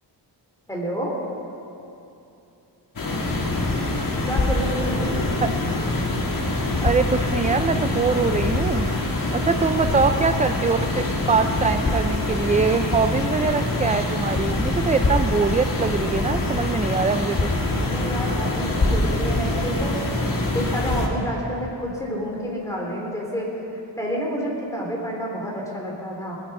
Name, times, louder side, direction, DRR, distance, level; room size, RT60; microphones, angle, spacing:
voice 1, 0.7-1.2 4.2-5.3 17.7-20.0 20.5-26.4, equal, 5° left, -2 dB, 3.1 m, -29 dB
sound 1, 3.0-21.1, left 2 dB, 50° left, 1.9 m, -24 dB
voice 2, 6.8-8.9 9.3-17.5, right 4 dB, 20° right, 7 dB, 0.3 m, -23 dB
20.5 x 9.6 x 5.4 m, 2.8 s
wide cardioid pair, 130°, 43 cm